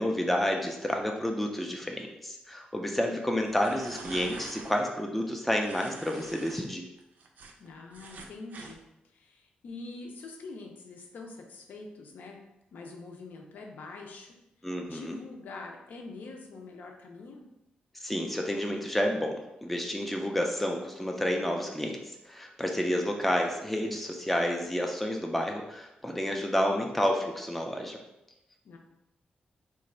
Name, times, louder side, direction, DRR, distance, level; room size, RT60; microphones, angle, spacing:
voice 1, 0.0-6.9 14.6-15.1 18.0-28.0, equal, 5° left, 1 dB, 0.3 m, -30 dB
sound 1, 3.4-4.7 5.6-6.6 7.0-8.8, right 4 dB, 65° right, 0.4 m, -45 dB
voice 2, 7.6-8.8 9.1-12.4 12.7-14.4 14.9-17.4 28.6-28.8, left 3 dB, 70° left, 2 dB, 0.6 m, -44 dB
3.0 x 2.4 x 4.2 m, 0.89 s
wide cardioid pair, 160°, 3 cm